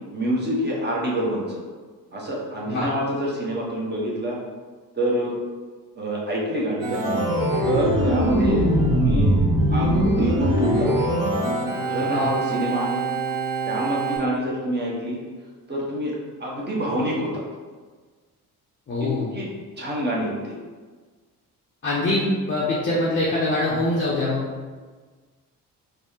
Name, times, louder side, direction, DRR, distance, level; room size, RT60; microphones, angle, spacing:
voice 1, 0.1-1.6 2.1-4.4 5.0-5.4 5.9-7.2 7.6-8.6 8.9-9.3 9.7-10.9 11.8-13.0 13.6-15.2 15.7-16.1 16.4-17.4 19.0-19.5 19.8-20.6, equal, 20° right, -4 dB, 1.1 m, -26 dB
Organ, 6.8-14.2, right 1 dB, 45° right, 0.7 m, -22 dB
voice 2, 18.9-19.3 21.8-24.4, left 2 dB, 25° left, -6 dB, 0.7 m, -23 dB
3.3 x 2.4 x 2.8 m, 1.4 s
hypercardioid pair, 45°, 45 cm